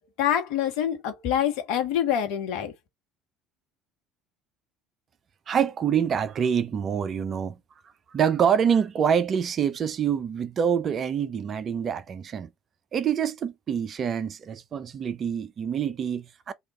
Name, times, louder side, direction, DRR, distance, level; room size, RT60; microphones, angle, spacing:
voice 1, 0.2-2.7, left 10 dB, 60° left, 1.0 m, -26 dB
voice 2, 5.5-7.6 8.1-12.5 12.9-16.5, right 8 dB, 40° right, 0.4 m, -26 dB
3.2 x 2.4 x 3.8 m
figure-of-eight pair, 60°, 0 cm